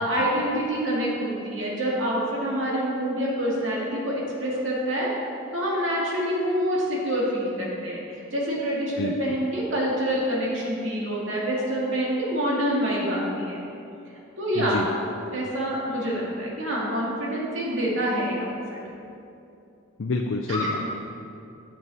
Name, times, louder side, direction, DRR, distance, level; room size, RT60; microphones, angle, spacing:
voice 1, 0.0-5.1 5.5-8.0 8.3-13.6 14.4-14.9 15.3-18.8 20.5-20.9, equal, 65° right, -5 dB, 2.2 m, -26 dB
voice 2, 14.6-14.9 20.0-20.9, left 3 dB, 65° left, 2 dB, 0.5 m, -28 dB
9.5 x 7.5 x 4.1 m, 2.7 s
head